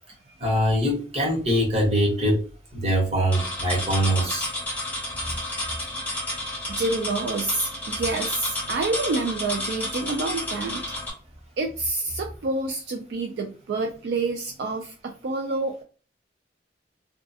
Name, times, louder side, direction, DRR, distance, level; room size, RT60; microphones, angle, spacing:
voice 1, 0.4-2.4 2.7-4.5 5.3-5.4, equal, 35° right, 1.0 m, -23 dB
sound 1, 3.3-11.1, left 1 dB, 10° left, 0.5 m, -31 dB
voice 2, 6.7-10.8 11.6-15.8, right 3 dB, 65° right, 0.3 m, -28 dB
2.3 x 2.3 x 2.6 m
head